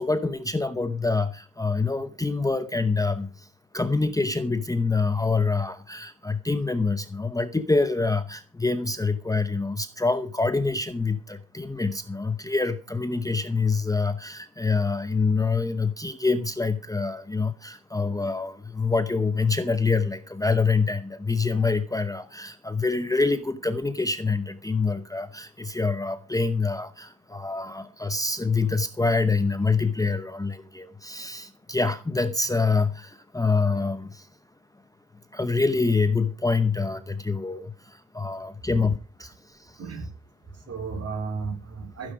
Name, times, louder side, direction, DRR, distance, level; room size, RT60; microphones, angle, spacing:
voice 1, 0.0-3.5 3.7-34.3 35.3-39.8, left 4 dB, 10° left, 10 dB, 0.8 m, -26 dB
voice 2, 39.8-40.1 40.5-42.1, right 4 dB, 45° right, 5 dB, 3.9 m, -34 dB
15.5 x 9.6 x 5.1 m, 0.34 s
cardioid pair, 155°, 35 cm